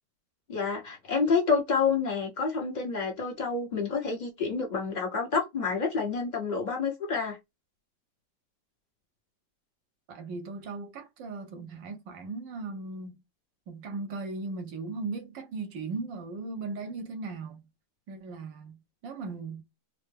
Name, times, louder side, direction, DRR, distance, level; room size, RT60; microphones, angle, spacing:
voice 1, 0.5-7.4, left 5 dB, 30° left, 1.1 m, -28 dB
voice 2, 10.1-13.2 13.7-17.6 18.1-19.6, right 3 dB, 80° right, 1.6 m, -38 dB
4.4 x 2.1 x 3.4 m
omnidirectional pair, 2.0 m